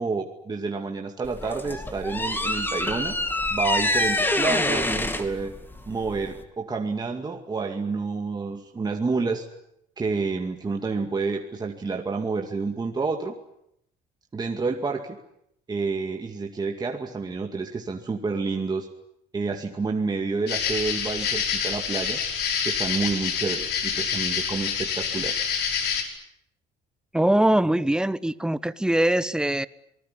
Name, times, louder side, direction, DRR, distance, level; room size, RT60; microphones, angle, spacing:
voice 1, 0.0-3.2 3.5-5.5 5.9-9.5 10.0-13.4 14.3-15.2 15.7-18.9 19.3-22.2 22.6-25.4, right 4 dB, 25° right, 2.3 m, -29 dB
sound 1, 1.2-6.4, left 1 dB, 10° left, 2.7 m, -26 dB
sound 2, 20.5-26.0, left 7 dB, 75° left, 5.3 m, -27 dB
voice 2, 27.1-29.7, right 1 dB, 5° right, 1.1 m, -22 dB
27.0 x 20.0 x 10.0 m
cardioid pair, 110°, 17 cm